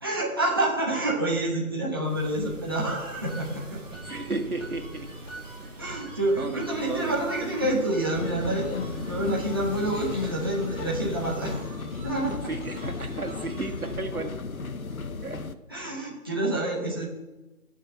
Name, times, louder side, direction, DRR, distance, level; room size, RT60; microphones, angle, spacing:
voice 1, 0.0-3.8 5.8-12.5 15.7-17.1, right 1 dB, 15° right, -5 dB, 1.3 m, -28 dB
sound 1, 2.0-11.8, right 2 dB, 60° right, 1.8 m, -43 dB
sound 2, 3.3-13.9, right 1 dB, 15° left, 5.5 m, -47 dB
voice 2, 4.0-5.1 5.6-7.5 12.4-14.3 15.2-15.4, right 3 dB, 80° right, 3 dB, 2.5 m, -34 dB
sound 3, 8.1-15.5, left 4 dB, 70° left, 1.1 m, -35 dB
13.5 x 6.5 x 7.3 m, 1.1 s
figure-of-eight pair, 175°, 43 cm